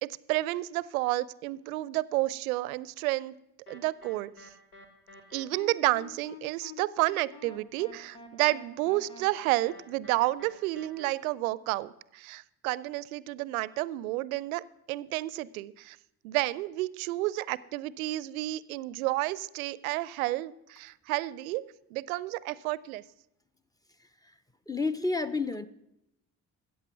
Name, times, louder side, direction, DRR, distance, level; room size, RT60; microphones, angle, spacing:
voice 1, 0.0-3.3 3.7-4.5 5.3-14.6 14.9-16.0 16.2-23.0, right 18 dB, 75° right, 21 dB, 0.5 m, -31 dB
sound 1, 3.7-11.1, left 3 dB, 85° left, 1.1 m, -49 dB
voice 2, 24.0-24.3 24.7-25.7, left 3 dB, 10° left, 14 dB, 0.6 m, -31 dB
14.0 x 8.4 x 5.8 m, 0.85 s
figure-of-eight pair, 40°, 44 cm